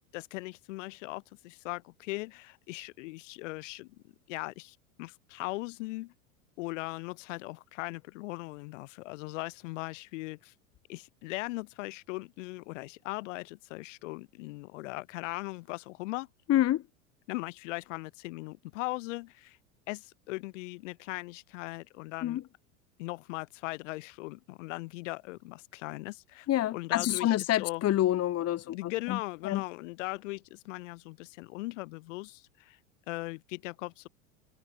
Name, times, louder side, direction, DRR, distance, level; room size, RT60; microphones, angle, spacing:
voice 1, 0.1-4.0 4.3-6.1 6.6-10.5 10.9-16.3 17.3-19.6 19.9-22.4 23.0-27.8 28.7-32.8 33.1-34.1, left 22 dB, 55° left, 5.4 m, -39 dB
voice 2, 16.5-16.8 22.2-22.4 26.5-29.2 29.4-29.6, left 13 dB, 35° left, 3.1 m, -27 dB
figure-of-eight pair, 85°, 43 cm